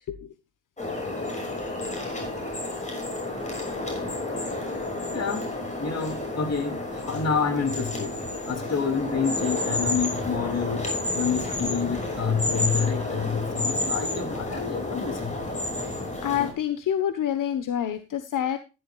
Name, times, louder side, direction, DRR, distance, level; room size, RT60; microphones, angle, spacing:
sound 1, 0.8-16.5, left 2 dB, 25° left, 6.3 m, -30 dB
voice 1, 5.1-5.5 5.8-8.2 8.5-10.9 11.1-15.3, left 6 dB, 55° left, 3.2 m, -28 dB
voice 2, 16.2-18.6, left 10 dB, 85° left, 1.3 m, -27 dB
14.5 x 11.5 x 2.5 m
wide cardioid pair, 140°, 31 cm